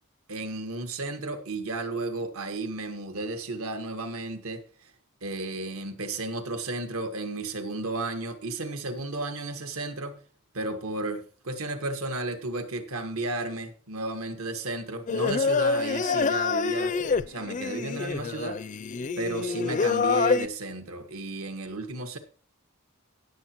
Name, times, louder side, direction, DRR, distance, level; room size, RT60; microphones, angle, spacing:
voice 1, 0.3-4.9 5.2-10.2 10.5-17.0 17.3-18.7 19.2-22.2, right 2 dB, 75° right, 1.6 m, -33 dB
Singing, 15.1-20.5, left 5 dB, 35° left, 0.4 m, -26 dB
17.5 x 7.9 x 3.0 m
head